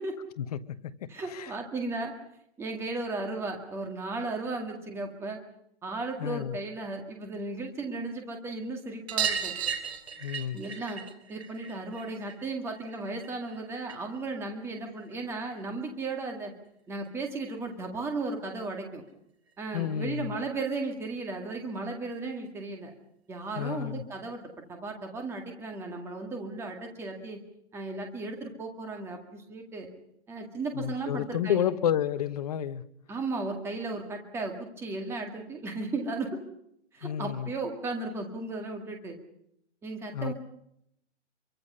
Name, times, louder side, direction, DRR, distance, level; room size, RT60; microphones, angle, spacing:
voice 1, 0.4-1.5 6.2-6.6 10.2-10.6 19.7-20.3 23.5-24.0 30.7-32.8 37.0-37.5 40.1-40.3, left 10 dB, 30° left, 1.1 m, -31 dB
voice 2, 1.1-2.1 2.6-5.4 5.8-9.5 10.5-11.0 11.3-16.5 16.9-19.0 19.6-22.9 23.3-27.4 27.7-29.9 30.3-31.7 33.1-36.3 36.9-39.2 39.8-40.3, right 3 dB, 5° right, 2.0 m, -35 dB
sound 1, 9.1-14.2 14.5-15.6 17.0-17.1 17.3-17.4 17.7-17.8 19.1-19.2 19.5-19.6 19.9-20.0 21.2-21.3 22.1-22.2, right 7 dB, 60° right, 3.2 m, -36 dB
26.5 x 24.0 x 5.5 m
hypercardioid pair, 165°, 36 cm